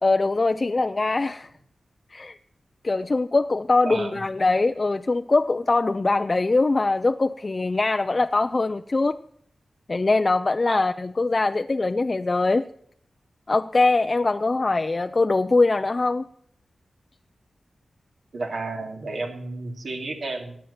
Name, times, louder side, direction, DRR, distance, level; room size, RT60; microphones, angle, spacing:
voice 1, 0.0-1.5 2.1-2.4 2.8-9.2 9.9-12.6 13.5-16.3, left 3 dB, 40° left, 0.5 m, -22 dB
voice 2, 3.8-4.2 10.7-10.8 18.3-20.6, right 3 dB, 75° right, 3.1 m, -32 dB
17.0 x 9.2 x 5.8 m
cardioid pair, 70°, 0 cm